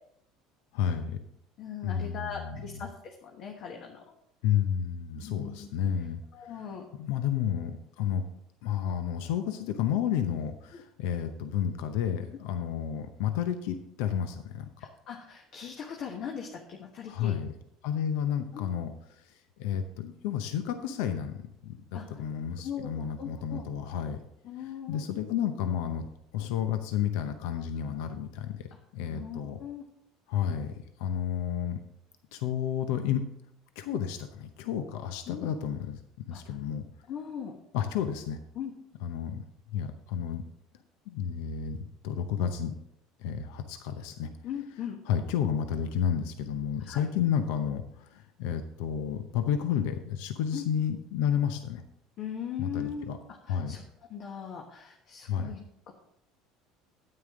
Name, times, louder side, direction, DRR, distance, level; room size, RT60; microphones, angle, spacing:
voice 1, 0.7-1.2 1.8-2.8 4.4-8.2 8.6-14.7 17.1-17.5 17.8-24.2 24.6-28.7 28.9-29.6 30.3-31.8 32.3-33.2 33.8-36.0 36.3-36.8 37.7-38.4 39.0-39.4 39.7-40.4 41.1-42.7 43.2-44.3 45.0-51.8 52.6-53.2 53.5-53.8 55.3-55.5, left 9 dB, 80° left, 8 dB, 0.7 m, -31 dB
voice 2, 1.6-4.0 5.2-5.7 6.3-6.9 15.1-17.3 18.5-18.7 21.9-22.1 22.6-23.6 24.4-25.0 29.1-29.8 35.3-35.5 36.3-36.4 37.1-37.6 38.5-38.7 44.4-45.0 46.8-47.0 50.5-50.6 52.2-53.0 53.5-53.8 54.1-55.9, left 8 dB, 55° left, 1 dB, 1.3 m, -39 dB
9.5 x 8.9 x 3.7 m, 0.77 s
supercardioid pair, 95°, 0 cm